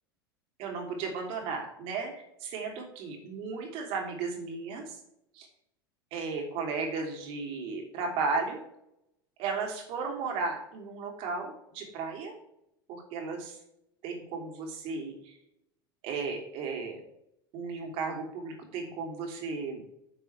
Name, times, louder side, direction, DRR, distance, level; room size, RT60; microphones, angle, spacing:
voice 1, 0.6-2.1 2.4-5.0 5.3-5.5 6.1-8.6 9.4-12.3 12.9-13.6 14.0-15.3 16.0-17.0 17.5-19.8, right 4 dB, 50° right, 1 dB, 3.3 m, -35 dB
11.5 x 7.5 x 3.4 m, 0.79 s
figure-of-eight pair, 80°, 12 cm